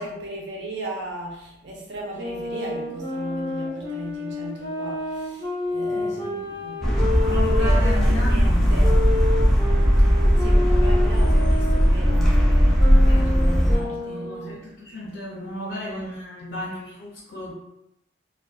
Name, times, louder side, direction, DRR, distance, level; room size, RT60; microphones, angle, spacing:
voice 1, 0.0-6.9 7.2-9.1 10.3-14.6, right 2 dB, 65° right, -2 dB, 0.6 m, -36 dB
Wind instrument woodwind instrument, 2.1-8.0 8.8-14.6, left 2 dB, 90° right, 0.9 m, -30 dB
voice 2, 5.9-6.5 7.2-8.8 13.0-17.5, left 1 dB, 65° left, -5 dB, 0.5 m, -34 dB
sound 1, 6.8-13.8, equal, ahead, 0.3 m, -18 dB
2.3 x 2.2 x 2.4 m, 0.84 s
head